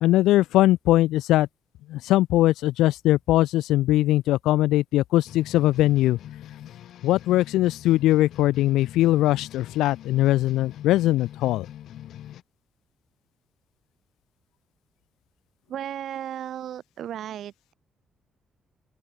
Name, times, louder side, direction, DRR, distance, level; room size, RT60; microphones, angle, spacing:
voice 1, 0.0-1.5 1.9-6.2 7.0-11.7, left 15 dB, 90° left, 1.9 m, -21 dB
sound 1, 5.2-12.4, left 11 dB, 75° left, 5.9 m, -43 dB
voice 2, 15.7-17.7, right 10 dB, 70° right, 4.0 m, -35 dB
open air
cardioid pair, 90°, 0 cm